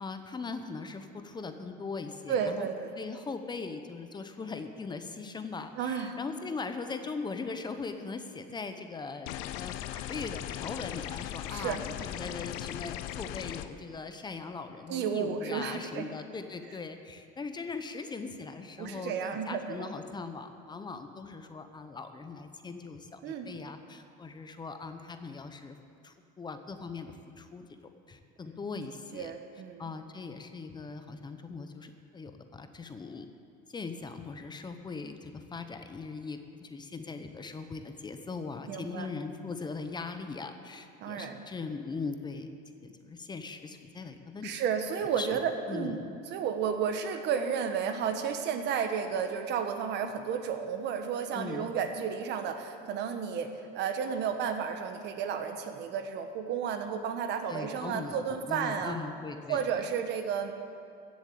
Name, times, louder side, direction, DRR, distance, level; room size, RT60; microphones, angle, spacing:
voice 1, 0.0-2.7 3.0-9.3 9.6-25.8 26.0-27.8 28.1-29.3 29.8-33.3 33.7-42.5 42.8-44.6 45.2-45.4 45.7-46.1 51.3-51.7 57.5-58.1 58.5-59.9, left 4 dB, 20° left, 8 dB, 0.9 m, -40 dB
voice 2, 2.3-3.0 5.8-6.2 11.5-11.8 14.9-16.1 18.8-19.9 23.2-23.5 29.1-29.8 38.7-39.1 41.0-41.4 44.4-46.0 46.3-59.0 59.5-60.5, right 7 dB, 60° right, 7 dB, 1.3 m, -32 dB
sound 1, 9.3-13.7, left 12 dB, 75° left, 0.7 m, -38 dB
15.0 x 7.4 x 8.5 m, 2.4 s
cardioid pair, 120°, 20 cm